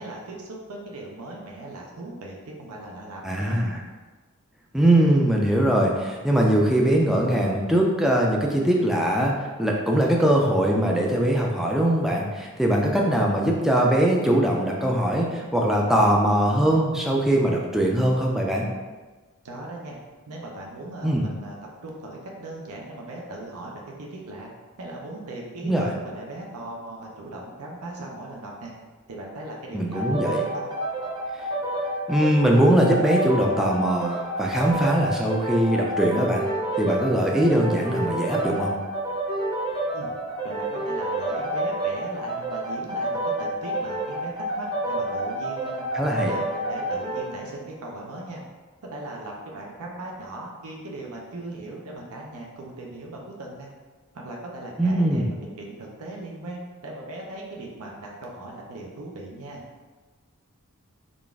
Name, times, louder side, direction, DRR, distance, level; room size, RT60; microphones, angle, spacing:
voice 1, 0.0-3.6 19.4-20.0 20.3-21.6 21.8-24.5 24.8-28.7 29.1-30.7 39.9-40.1 40.4-45.8 46.3-48.4 48.8-53.7 54.1-59.6, right 2 dB, 75° right, -1 dB, 0.6 m, -38 dB
voice 2, 3.2-3.8 4.7-18.7 21.0-21.2 25.6-25.9 29.7-30.4 32.1-36.5 36.8-38.7 45.9-46.3 54.8-55.3, right 1 dB, ahead, -1 dB, 0.3 m, -21 dB
sound 1, 29.9-47.3, right 1 dB, 20° right, 0.7 m, -29 dB
3.9 x 2.4 x 3.4 m, 1.3 s
head